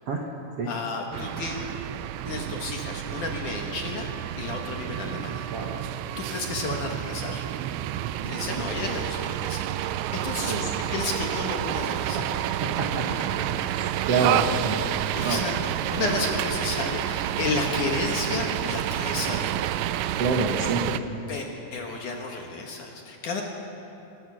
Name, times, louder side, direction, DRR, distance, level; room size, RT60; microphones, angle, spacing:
voice 1, 0.6-1.7 2.3-4.1 4.4-5.5 6.2-7.4 8.2-12.3 15.1-19.8 21.3-23.4, left 3 dB, 60° left, 1 dB, 2.4 m, -32 dB
sound 1, 1.1-21.0, right 12 dB, 90° right, 2.9 m, -29 dB
voice 2, 12.6-13.1 13.7-14.8 15.2-15.6 16.0-16.2 20.2-21.0, right 3 dB, 70° right, 1 dB, 1.4 m, -27 dB
24.0 x 20.0 x 6.4 m, 2.9 s
omnidirectional pair, 5.1 m